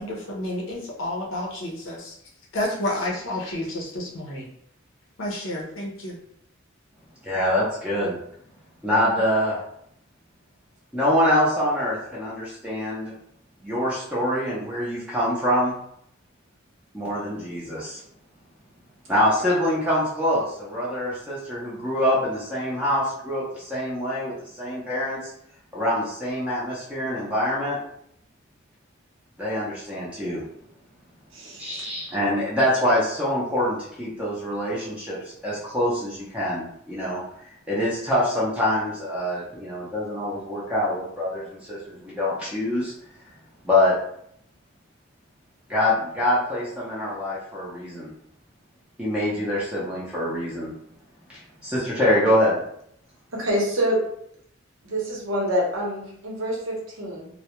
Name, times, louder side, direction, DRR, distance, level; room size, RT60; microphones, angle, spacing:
voice 1, 0.0-2.2 2.5-4.5 5.2-6.2, left 1 dB, 70° left, -2 dB, 0.5 m, -30 dB
voice 2, 7.2-8.1 8.8-9.6 10.9-13.1 13.6-15.7 16.9-18.0 19.1-25.3 25.7-27.8 29.4-30.4 31.6-35.2 35.4-37.2 37.7-42.9 43.6-43.9 45.7-48.1 49.0-50.7 51.3-52.6, left 1 dB, 5° right, -8 dB, 0.5 m, -25 dB
voice 3, 31.3-31.9 53.3-54.0 54.8-57.3, equal, 75° right, -2 dB, 0.8 m, -26 dB
2.2 x 2.0 x 2.9 m, 0.70 s
head